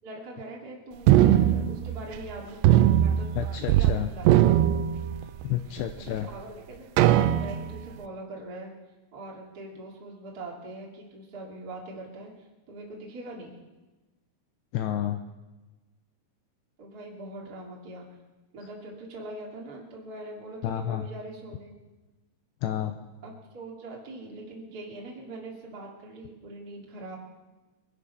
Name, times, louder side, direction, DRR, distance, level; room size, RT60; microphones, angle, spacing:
voice 1, 0.0-3.3 3.6-4.6 6.1-8.7 9.1-13.6 16.8-18.1 18.5-21.7 23.2-27.2, right 2 dB, 30° right, -2 dB, 2.0 m, -42 dB
sound 1, 1.1-2.3 2.6-5.5 6.1-6.2 7.0-7.8, right 12 dB, 80° right, 2.6 m, -20 dB
voice 2, 3.4-4.1 5.4-6.3 14.7-15.2 20.6-21.1 22.6-23.0, left 11 dB, 85° left, 7 dB, 2.5 m, -30 dB
22.5 x 10.5 x 5.6 m, 1.2 s
omnidirectional pair, 5.4 m